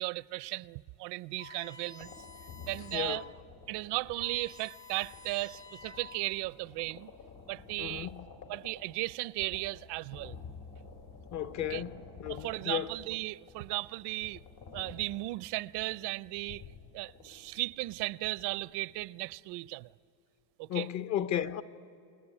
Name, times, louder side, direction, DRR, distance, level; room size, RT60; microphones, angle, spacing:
voice 1, 0.0-2.1 2.7-3.2 3.7-7.1 7.5-8.1 8.5-10.4 11.7-11.8 12.3-14.4 14.7-16.6 16.9-19.9 20.6-20.9, right 21 dB, 75° right, 0.6 m, -36 dB
sound 1, 1.4-3.4 3.8-3.9 4.1-6.5, left 5 dB, 10° left, 0.5 m, -51 dB
sound 2, 2.0-19.1, left 5 dB, 75° left, 3.7 m, -51 dB
voice 2, 7.8-8.2 11.3-11.9 12.2-12.9 20.7-21.6, left 10 dB, 45° left, 0.8 m, -34 dB
29.0 x 20.5 x 10.0 m
cardioid pair, 170°, 41 cm